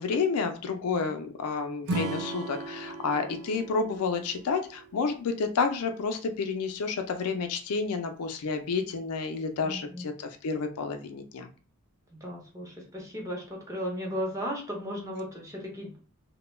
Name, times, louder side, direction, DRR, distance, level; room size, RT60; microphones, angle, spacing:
voice 1, 0.0-11.5, left 4 dB, 90° left, 7 dB, 0.4 m, -30 dB
Acoustic guitar / Strum, 1.8-5.1, right 2 dB, 70° right, 0.4 m, -36 dB
voice 2, 9.6-10.1 12.1-16.0, equal, 15° right, -2 dB, 0.7 m, -36 dB
2.2 x 2.1 x 3.1 m, 0.39 s
head